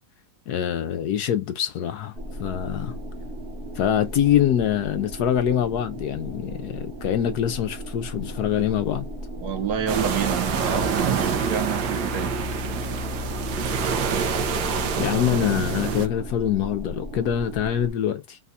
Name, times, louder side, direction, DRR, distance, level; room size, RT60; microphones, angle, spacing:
voice 1, 0.5-3.0 3.7-9.1 15.0-18.4, left 10 dB, 70° left, 1.0 m, -24 dB
sound 1, 2.1-17.9, right 1 dB, 40° right, 1.1 m, -37 dB
voice 2, 9.4-12.3, right 8 dB, 65° right, 1.4 m, -28 dB
sound 2, 9.9-16.1, right 5 dB, 80° right, 1.5 m, -26 dB
4.1 x 2.3 x 4.0 m
omnidirectional pair, 2.0 m